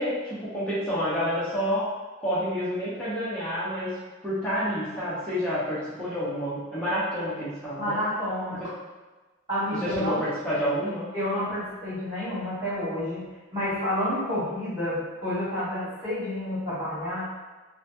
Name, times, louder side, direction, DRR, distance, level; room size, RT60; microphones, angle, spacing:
voice 1, 0.0-1.9 2.2-3.9 4.2-8.0 8.6-8.7 9.8-11.0, equal, 5° left, -12 dB, 0.8 m, -29 dB
voice 2, 7.8-8.6 9.5-10.2 11.1-13.2 13.5-17.2, left 1 dB, 30° right, -16 dB, 1.5 m, -29 dB
2.9 x 2.2 x 2.6 m, 1.2 s
head